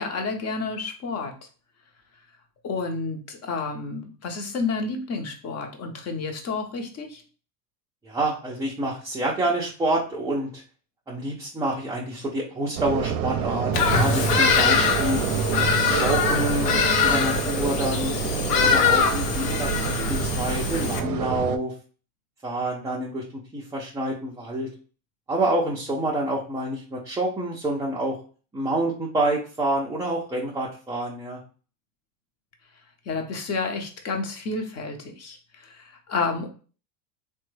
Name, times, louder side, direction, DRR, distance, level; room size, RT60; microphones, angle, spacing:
voice 1, 0.0-1.3 2.6-7.2 33.1-36.5, left 4 dB, 30° left, 4 dB, 0.8 m, -30 dB
voice 2, 8.0-10.6 11.1-15.3 15.9-16.7 17.0-18.2 18.6-21.7 22.4-24.7 25.3-28.2 28.5-31.4, right 1 dB, 10° right, -5 dB, 0.4 m, -27 dB
sound 1, 12.8-21.6, right 8 dB, 70° right, 0.6 m, -28 dB
Bird vocalization bird call bird song, 13.7-21.0, left 6 dB, 75° left, 0.8 m, -23 dB
3.2 x 2.2 x 3.1 m, 0.38 s
supercardioid pair, 105°, 48 cm